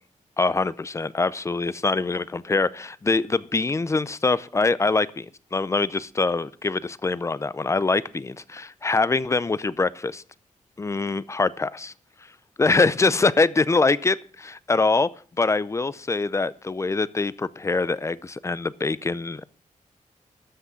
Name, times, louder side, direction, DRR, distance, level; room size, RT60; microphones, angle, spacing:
voice 1, 0.4-10.2 10.8-11.9 12.6-15.1 15.4-19.4, left 3 dB, 20° left, 0.5 m, -24 dB
13.0 x 6.1 x 6.8 m
wide cardioid pair, 160°, 13 cm